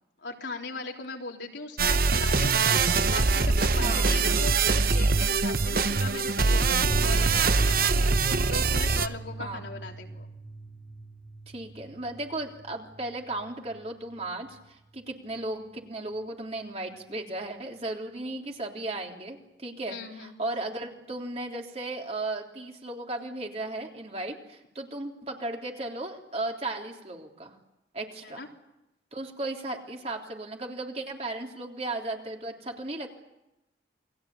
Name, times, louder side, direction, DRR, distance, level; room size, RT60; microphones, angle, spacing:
voice 1, 0.2-10.3 19.9-20.4 28.2-28.5, left 3 dB, 75° left, 1 dB, 3.7 m, -39 dB
sound 1, 1.8-9.1, right 4 dB, 50° right, 0.9 m, -23 dB
voice 2, 3.8-4.1 9.4-9.6 11.5-27.6 27.9-28.4 29.1-33.1, right 2 dB, 35° right, 1 dB, 3.5 m, -35 dB
sound 2, 6.8-13.9 14.2-14.3 14.6-14.7, right 2 dB, 35° left, 1.9 m, -38 dB
29.0 x 21.5 x 8.6 m, 0.92 s
head